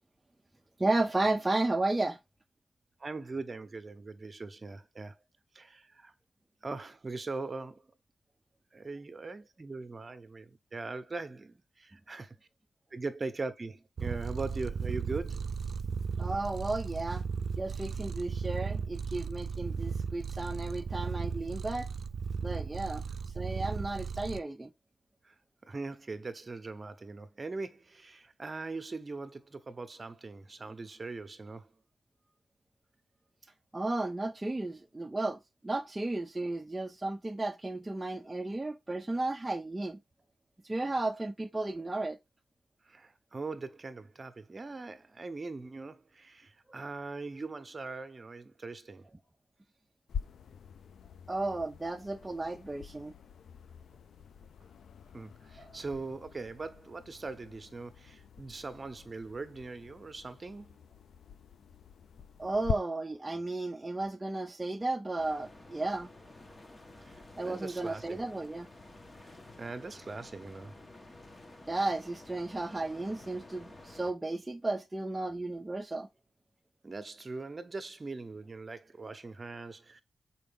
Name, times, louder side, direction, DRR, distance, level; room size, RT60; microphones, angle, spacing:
voice 1, 0.8-2.2 16.2-17.2 17.6-21.9 22.4-24.7 33.7-40.0 40.6-42.2 51.3-53.1 55.6-55.7 62.4-66.1 67.4-68.7 71.7-76.1, right 2 dB, 15° right, 0.6 m, -33 dB
voice 2, 3.0-5.2 5.5-6.1 6.6-7.8 8.7-12.4 12.9-15.5 25.2-25.3 25.7-31.7 42.9-49.1 55.1-60.8 67.0-68.2 69.2-69.3 69.6-70.7 76.8-80.0, right 3 dB, 35° right, 0.9 m, -41 dB
Purr, 14.0-24.4, right 5 dB, 60° right, 0.5 m, -36 dB
sound 1, 50.1-62.7, left 7 dB, 80° left, 0.4 m, -44 dB
sound 2, 65.2-74.1, left 2 dB, 30° left, 1.2 m, -52 dB
6.4 x 4.7 x 3.6 m
wide cardioid pair, 105°, 0 cm